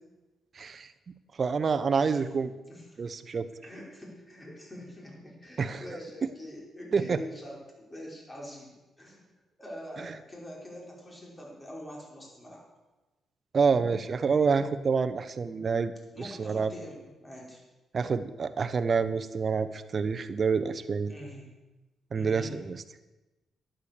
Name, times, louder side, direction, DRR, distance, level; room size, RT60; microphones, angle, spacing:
voice 1, 0.6-0.9 1.4-2.5 3.0-3.5 5.6-5.8 6.9-7.2 13.5-15.9 16.2-16.7 17.9-21.1 22.1-22.8, right 5 dB, 50° right, 12 dB, 0.9 m, -27 dB
voice 2, 2.7-3.0 3.6-9.3 9.6-12.6 16.1-17.6 21.1-21.5 22.1-22.5, equal, 20° left, -2 dB, 5.2 m, -44 dB
11.5 x 9.0 x 6.8 m, 1.1 s
supercardioid pair, 60°, 0 cm